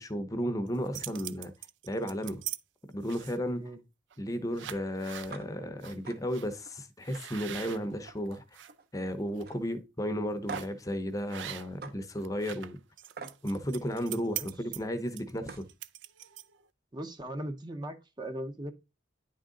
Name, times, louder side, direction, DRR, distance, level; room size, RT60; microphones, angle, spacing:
voice 1, 0.0-1.5 1.8-2.4 2.9-3.6 4.2-8.4 8.9-12.8 13.4-15.7, equal, 20° left, 0.7 m, -34 dB
sound 1, 0.7-2.6 3.0-3.5 4.1-4.3 4.5-5.3 5.8-6.0 6.3-6.5 7.0-8.7 9.2-9.4 10.5-10.8 11.3-11.9 12.2-16.7, right 12 dB, 75° right, 0.4 m, -42 dB
sound 2, 5.3-5.5 5.8-6.2 6.6-6.7 7.1-8.3 8.6-9.0 9.4-9.6 10.5-10.8 11.8-11.9 13.2-13.4 15.0-15.1 15.4-15.7, right 5 dB, 55° right, 0.8 m, -43 dB
voice 2, 16.9-18.7, right 1 dB, 25° right, 0.6 m, -39 dB
9.9 x 3.7 x 3.8 m
head